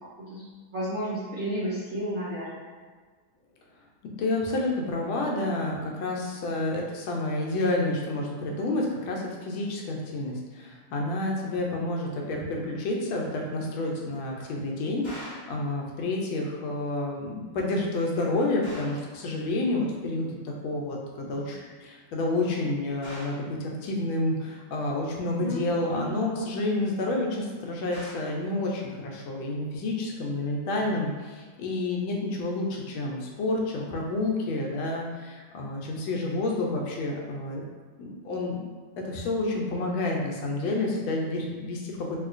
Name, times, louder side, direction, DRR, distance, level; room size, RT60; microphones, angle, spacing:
voice 1, 0.2-2.5 25.4-26.1, equal, 80° right, -9 dB, 0.6 m, -32 dB
voice 2, 4.2-37.6 38.0-38.7 39.0-42.2, left 2 dB, 90° left, -1 dB, 1.4 m, -29 dB
sound 1, 15.0-15.6 18.6-19.1 23.0-23.5 27.9-28.4, left 1 dB, 40° left, 0.9 m, -42 dB
3.6 x 2.7 x 2.4 m, 1.5 s
omnidirectional pair, 2.2 m